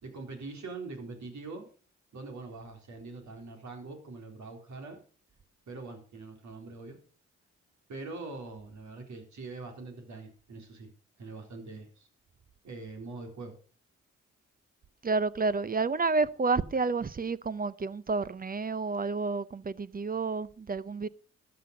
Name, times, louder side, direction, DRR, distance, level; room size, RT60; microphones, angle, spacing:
voice 1, 0.0-1.7 2.1-5.0 5.7-7.0 7.9-10.9 11.2-12.1 12.6-13.5, right 3 dB, 70° right, 3.8 m, -43 dB
voice 2, 15.0-21.1, right 4 dB, 30° right, 0.6 m, -30 dB
13.0 x 6.0 x 6.5 m
supercardioid pair, 55°, 30 cm